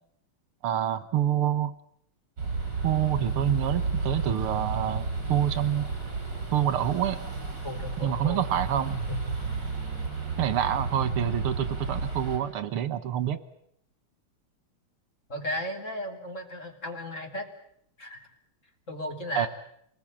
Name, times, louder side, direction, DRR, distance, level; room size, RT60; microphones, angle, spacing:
voice 1, 0.6-1.7 2.8-5.9 6.5-7.3 8.0-9.0 10.4-13.4 19.4-19.5, right 10 dB, 85° right, 13 dB, 2.2 m, -27 dB
sound 1, 2.4-12.4, right 4 dB, 50° right, 6.0 m, -32 dB
voice 2, 7.6-8.5 9.1-9.3 15.3-17.5 18.0-18.3 18.9-19.5, left 1 dB, 35° left, 3 dB, 3.7 m, -35 dB
26.5 x 21.0 x 8.9 m, 0.71 s
omnidirectional pair, 2.4 m